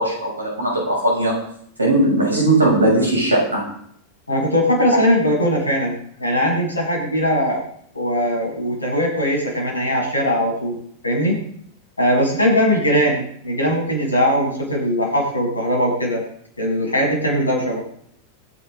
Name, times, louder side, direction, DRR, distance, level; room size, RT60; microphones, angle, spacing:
voice 1, 0.0-1.4 1.8-3.6 6.4-6.5, right 1 dB, 80° right, -2 dB, 7.2 m, -18 dB
voice 2, 4.3-7.6 7.9-10.8 11.0-11.4 12.0-16.2 16.6-17.8, equal, 80° left, -1 dB, 6.8 m, -20 dB
24.5 x 10.5 x 3.9 m, 0.66 s
figure-of-eight pair, 90°, 0 cm